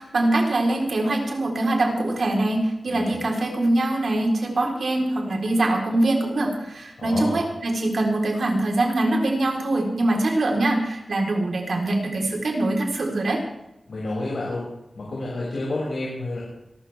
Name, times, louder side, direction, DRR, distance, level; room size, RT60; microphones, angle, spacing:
voice 1, 0.0-13.4, right 2 dB, 75° right, 0 dB, 3.8 m, -23 dB
voice 2, 2.9-3.2 7.0-7.3 13.9-14.7 14.9-16.4, left 2 dB, 75° left, -6 dB, 6.2 m, -29 dB
26.0 x 13.0 x 3.5 m, 0.88 s
wide cardioid pair, 95°, 0 cm